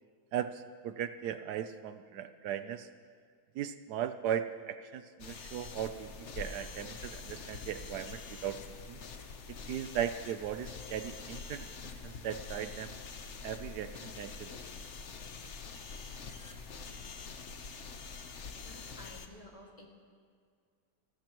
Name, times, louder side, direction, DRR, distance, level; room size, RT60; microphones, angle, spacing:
voice 1, 0.3-2.9 3.5-8.6 8.9-9.0 9.5-11.7 12.0-12.9 13.4-14.5, right 9 dB, 80° right, 10 dB, 1.2 m, -37 dB
sound 1, 5.2-19.3, left 5 dB, 50° left, 1.1 m, -45 dB
voice 2, 18.5-19.9, equal, 20° left, -1 dB, 2.0 m, -52 dB
29.5 x 13.5 x 3.0 m, 2.1 s
omnidirectional pair, 1.7 m